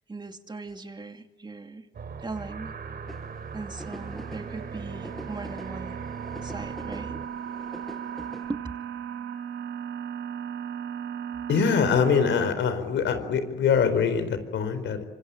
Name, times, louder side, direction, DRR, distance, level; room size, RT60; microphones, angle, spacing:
voice 1, 0.1-1.9 2.2-2.7 3.5-6.0 6.4-7.2 8.5-8.6, right 3 dB, 20° right, 6 dB, 2.6 m, -38 dB
sound 1, 1.9-7.3, right 5 dB, 50° right, 3.3 m, -39 dB
sound 2, 3.1-8.5, equal, ahead, 6.9 m, -45 dB
sound 3, 3.9-12.5, right 8 dB, 80° right, 2.3 m, -37 dB
voice 2, 11.5-15.0, left 6 dB, 70° left, 10 dB, 4.4 m, -24 dB
26.0 x 26.0 x 8.9 m, 1.2 s
cardioid pair, 90°, 20 cm